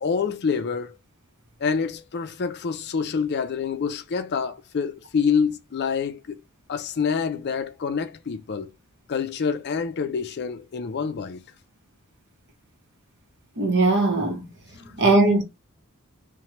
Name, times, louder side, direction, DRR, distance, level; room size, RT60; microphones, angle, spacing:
voice 1, 0.0-1.0 1.6-6.4 6.7-8.7 9.1-11.4, left 6 dB, 50° left, 0.4 m, -27 dB
voice 2, 13.6-14.5 15.0-15.4, right 2 dB, 55° right, 0.8 m, -19 dB
3.0 x 2.2 x 2.8 m
head